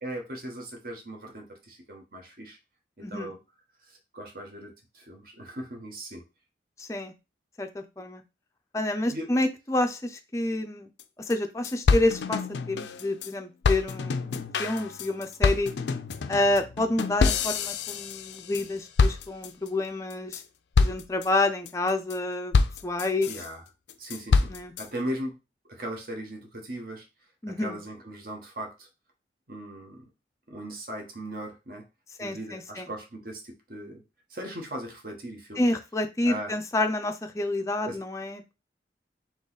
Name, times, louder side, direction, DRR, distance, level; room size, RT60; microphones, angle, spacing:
voice 1, 0.0-2.6 3.0-3.4 3.9-6.2 9.1-9.3 23.3-23.6 24.0-24.5 24.8-25.4 25.7-27.1 27.5-28.9 29.5-30.0 30.5-31.8 32.2-34.0 34.3-35.7 36.2-36.5 37.9-38.0, right 1 dB, 55° right, 3 dB, 1.1 m, -38 dB
voice 2, 6.8-7.1 7.6-8.2 8.7-10.9 11.3-12.4 12.7-15.7 16.3-20.4 20.8-23.3 24.5-24.7 27.4-27.8 32.2-32.9 35.6-38.5, left 2 dB, 15° left, 5 dB, 0.4 m, -28 dB
sound 1, 11.0-11.1 11.3-11.4 11.6-13.3 13.6-18.7 19.0-19.7 20.1-20.4 20.7-21.3 21.7-22.1 22.5-23.5 23.9-24.9, left 4 dB, 80° left, 0.4 m, -26 dB
3.9 x 3.0 x 3.9 m, 0.27 s
head